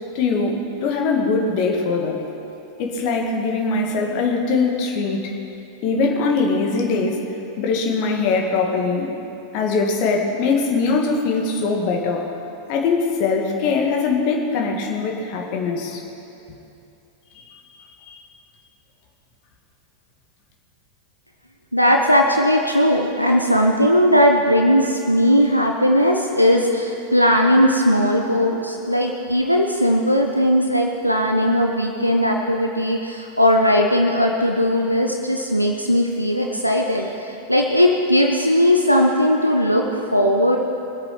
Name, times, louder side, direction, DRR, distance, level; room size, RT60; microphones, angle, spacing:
voice 1, 0.1-2.2 2.8-5.3 5.8-7.2 7.6-9.1 9.5-12.3 12.7-16.0 17.4-17.5 18.1-18.2, left 4 dB, 45° left, 1 dB, 2.1 m, -21 dB
voice 2, 21.7-40.6, equal, 90° left, 1 dB, 0.9 m, -18 dB
23.0 x 8.3 x 6.0 m, 2.8 s
figure-of-eight pair, 90°, 0 cm